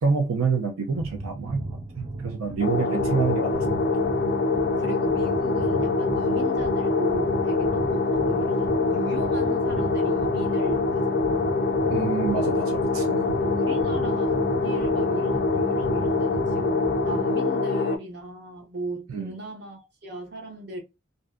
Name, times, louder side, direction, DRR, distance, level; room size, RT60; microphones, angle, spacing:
voice 1, 0.0-1.6 2.2-3.8 11.9-13.3 19.1-19.3, right 5 dB, 85° right, 0.4 m, -27 dB
sound 1, 0.9-17.3, right 2 dB, 25° right, 0.4 m, -37 dB
sound 2, 2.6-18.0, left 3 dB, 50° left, 0.4 m, -24 dB
voice 2, 2.8-3.1 4.0-4.1 4.8-11.6 13.4-20.8, right 1 dB, 55° right, 0.8 m, -37 dB
2.5 x 2.1 x 2.4 m
head